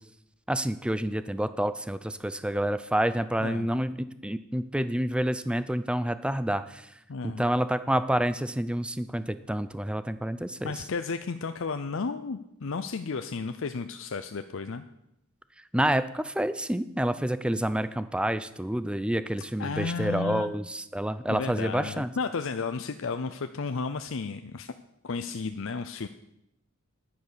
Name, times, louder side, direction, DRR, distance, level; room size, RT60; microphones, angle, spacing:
voice 1, 0.5-6.8 7.4-10.7 15.7-22.1, right 1 dB, 5° right, 13 dB, 0.5 m, -28 dB
voice 2, 7.1-7.4 10.6-14.8 19.6-20.5 21.3-24.7 25.0-26.1, left 4 dB, 65° left, 9 dB, 0.6 m, -33 dB
10.5 x 9.5 x 6.8 m, 0.81 s
head